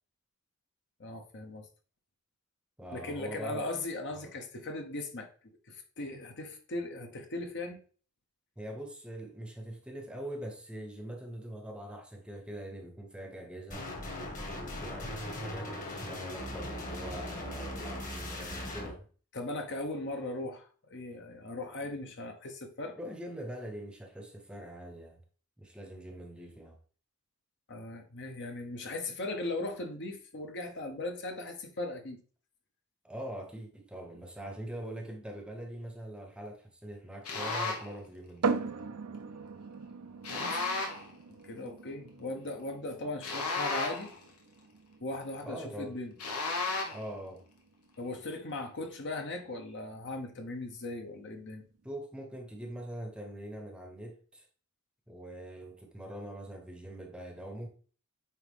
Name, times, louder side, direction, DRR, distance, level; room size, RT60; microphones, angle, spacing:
voice 1, 1.0-1.7 2.9-5.3 5.7-7.8 19.3-23.0 27.7-32.2 40.3-40.7 41.4-44.1 45.0-46.1 48.0-51.6, left 2 dB, 55° left, 1.1 m, -38 dB
voice 2, 2.8-3.7 4.2-4.3 8.6-13.9 14.5-19.1 23.0-25.2 25.6-26.8 33.0-38.6 45.4-46.0 46.9-47.4 51.8-54.5 55.1-57.7, right 1 dB, 5° right, 0.9 m, -43 dB
sound 1, 13.7-18.9, left 1 dB, 35° left, 1.7 m, -39 dB
sound 2, 37.2-37.9 40.2-41.1 43.2-44.2 46.2-47.1, left 3 dB, 90° left, 1.5 m, -33 dB
sound 3, 38.4-51.9, right 4 dB, 85° right, 0.6 m, -41 dB
8.9 x 3.6 x 3.6 m
head